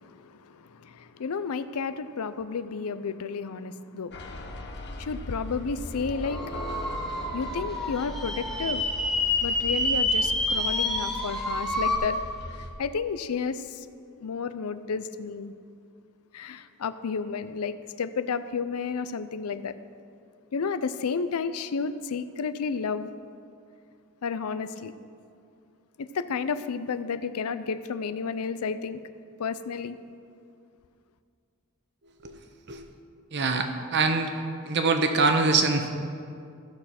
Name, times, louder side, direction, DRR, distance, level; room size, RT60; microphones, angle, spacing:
voice 1, 0.0-4.2 5.0-6.4 7.3-8.8 9.4-12.2 12.6-13.9 14.2-15.5 16.3-19.8 20.5-23.1 24.2-24.9 26.0-29.0 29.4-30.0, left 5 dB, 90° left, 12 dB, 0.5 m, -32 dB
sound 1, 4.1-12.7, left 1 dB, 50° left, 1.0 m, -39 dB
sound 2, 6.3-11.9, left 1 dB, ahead, 1.0 m, -28 dB
voice 2, 33.3-34.3 34.7-35.9, right 3 dB, 50° right, 6 dB, 1.0 m, -24 dB
15.0 x 6.5 x 5.7 m, 2.3 s
head